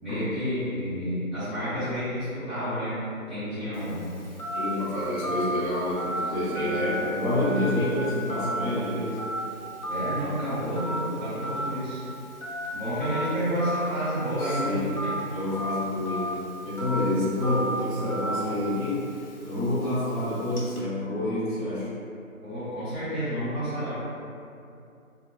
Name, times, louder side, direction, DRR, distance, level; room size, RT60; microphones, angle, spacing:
voice 1, 0.0-3.0 3.3-4.1 6.6-6.8 9.9-12.0 12.7-15.1 22.4-24.0, equal, ahead, -15 dB, 0.7 m, -30 dB
Telephone, 3.7-20.8, right 1 dB, 90° left, 1.1 m, -35 dB
voice 2, 4.5-9.2 14.4-14.9 15.1-16.4 16.6-21.9, left 1 dB, 35° left, -17 dB, 1.3 m, -28 dB
4.7 x 2.2 x 2.3 m, 2.6 s
figure-of-eight pair, 175°, 42 cm